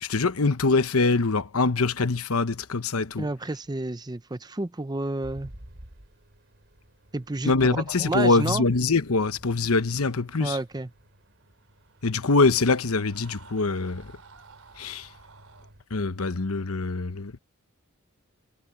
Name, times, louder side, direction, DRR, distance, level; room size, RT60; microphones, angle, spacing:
voice 1, 0.0-3.3 7.4-10.6 12.0-14.1 14.8-15.1 15.9-17.4, left 3 dB, 80° left, 1.0 m, -24 dB
voice 2, 3.2-5.5 7.1-8.6 10.4-10.9, right 2 dB, 20° right, 0.6 m, -30 dB
sound 1, 5.2-15.8, right 1 dB, 55° right, 3.2 m, -52 dB
Screaming, 11.3-15.7, right 5 dB, 75° right, 4.1 m, -54 dB
head